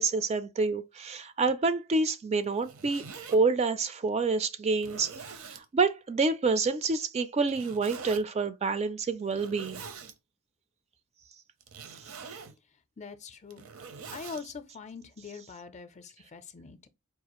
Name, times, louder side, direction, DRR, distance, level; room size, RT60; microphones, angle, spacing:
voice 1, 0.0-3.0 3.3-9.8, right 4 dB, 30° right, 0.3 m, -28 dB
Zipper (clothing), 2.4-3.4 4.1-4.2 4.8-5.7 7.5-8.2 9.2-10.1 11.6-12.6 13.3-14.4, right 5 dB, 65° right, 0.6 m, -44 dB
voice 2, 13.0-13.6 14.1-16.9, left 5 dB, 30° left, 0.5 m, -43 dB
4.8 x 2.4 x 2.9 m
head